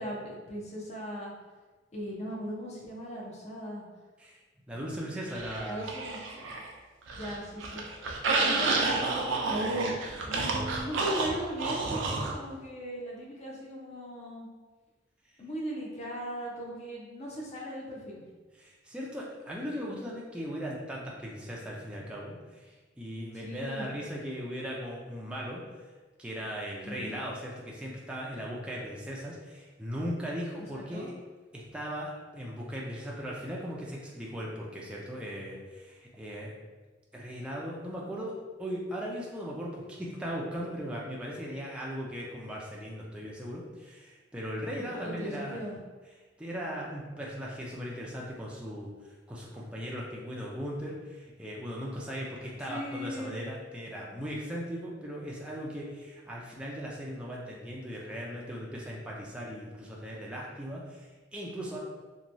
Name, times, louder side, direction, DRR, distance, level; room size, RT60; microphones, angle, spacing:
voice 1, 0.0-1.3 1.9-3.8 5.7-6.6 7.1-7.8 8.4-8.8 9.5-14.5 15.4-18.2 23.3-23.9 26.8-27.2 30.6-31.1 44.7-45.8 52.6-53.4, equal, 35° left, -4 dB, 0.7 m, -38 dB
voice 2, 4.7-5.8 18.6-25.7 26.2-31.1 31.5-36.5 37.1-38.3 38.6-45.6 46.4-48.9 49.3-61.8, equal, 5° right, -4 dB, 0.4 m, -38 dB
sound 1, 5.3-6.7 7.0-12.4, right 3 dB, 85° right, 0.4 m, -30 dB
3.0 x 2.2 x 2.6 m, 1.3 s
head